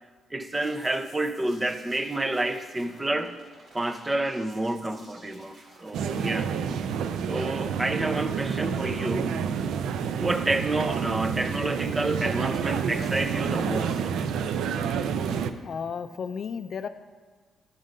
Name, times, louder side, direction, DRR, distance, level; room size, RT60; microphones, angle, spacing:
voice 1, 0.3-3.3 3.7-6.6 7.3-9.4 10.2-14.0, right 2 dB, 15° right, 0.5 m, -29 dB
sound 1, 0.5-6.3, right 2 dB, 60° right, 1.7 m, -54 dB
sound 2, 5.9-15.5, right 7 dB, 85° right, 0.4 m, -29 dB
voice 2, 15.6-16.9, left 6 dB, 50° left, 0.3 m, -33 dB
10.5 x 3.8 x 6.4 m
cardioid pair, 120°, 0 cm